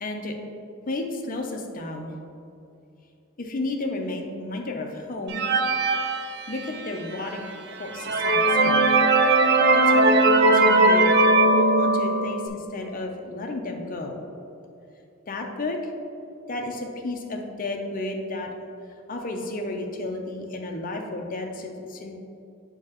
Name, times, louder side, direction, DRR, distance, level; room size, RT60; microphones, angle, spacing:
voice 1, 0.0-0.3 0.9-2.1 3.4-5.4 6.5-7.4 7.8-8.9 9.7-11.2 11.5-14.2 15.3-15.8 16.5-18.5 19.1-22.2, left 2 dB, 40° left, 2 dB, 0.6 m, -32 dB
sound 1, 5.3-6.9 7.5-7.6 7.9-12.5, right 2 dB, 50° right, 0.4 m, -19 dB
6.8 x 4.8 x 3.0 m, 2.6 s
head